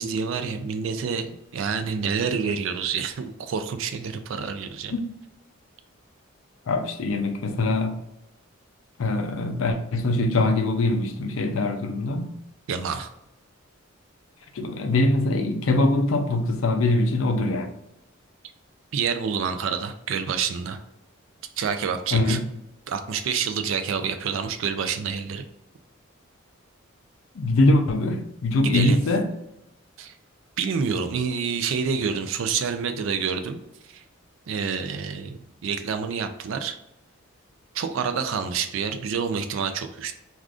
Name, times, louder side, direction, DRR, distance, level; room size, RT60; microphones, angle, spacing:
voice 1, 0.0-4.9 12.7-13.1 18.9-20.8 21.6-22.4 22.9-25.4 28.6-29.0 30.0-30.1 30.6-33.6 33.8-34.0 34.5-36.8 37.7-40.1, right 6 dB, 70° right, 9 dB, 0.3 m, -28 dB
voice 2, 6.7-8.0 9.0-12.4 14.5-17.7 22.1-22.4 27.3-29.3, left 2 dB, 70° left, 5 dB, 0.4 m, -23 dB
2.4 x 2.4 x 3.4 m, 0.85 s
head